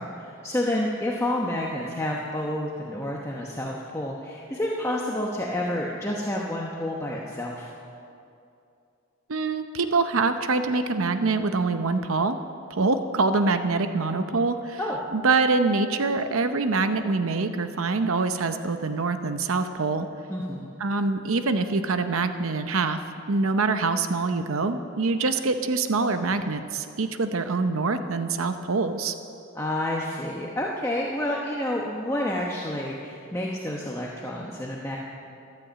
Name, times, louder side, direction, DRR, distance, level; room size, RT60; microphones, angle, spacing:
voice 1, 0.0-7.7 14.8-15.0 20.3-20.7 29.5-35.0, left 1 dB, 15° left, -3 dB, 1.0 m, -29 dB
voice 2, 9.3-12.4 12.7-14.8 15.1-20.1 20.8-23.0 23.3-29.1, right 3 dB, 75° right, 9 dB, 0.7 m, -25 dB
13.5 x 13.0 x 7.4 m, 2.6 s
head